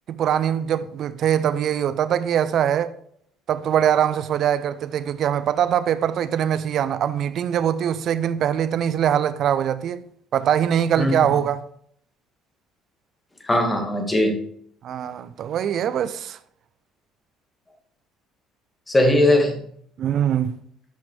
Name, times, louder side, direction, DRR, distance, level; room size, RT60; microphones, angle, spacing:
voice 1, 0.1-2.9 3.5-10.0 10.3-11.6 14.8-16.4 20.0-20.6, right 9 dB, 50° right, 0.5 m, -22 dB
voice 2, 11.0-11.3 13.4-14.4 18.9-19.6, left 1 dB, 20° left, 2.0 m, -19 dB
11.0 x 5.8 x 3.4 m
figure-of-eight pair, 55°, 0 cm